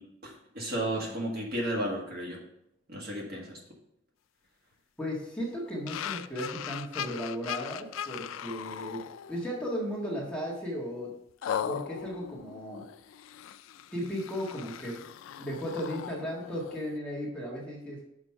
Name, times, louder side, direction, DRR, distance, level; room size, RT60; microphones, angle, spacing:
voice 1, 0.0-2.4 2.9-3.6, right 1 dB, 50° right, -2 dB, 1.7 m, -33 dB
voice 2, 5.0-9.0 9.3-11.1 11.6-12.8 13.9-15.0 15.4-18.0, equal, 5° left, -4 dB, 1.6 m, -35 dB
sound 1, 5.9-9.7 10.1-10.4 11.4-17.0, left 9 dB, 90° left, 0.3 m, -39 dB
6.1 x 5.1 x 5.7 m, 0.77 s
head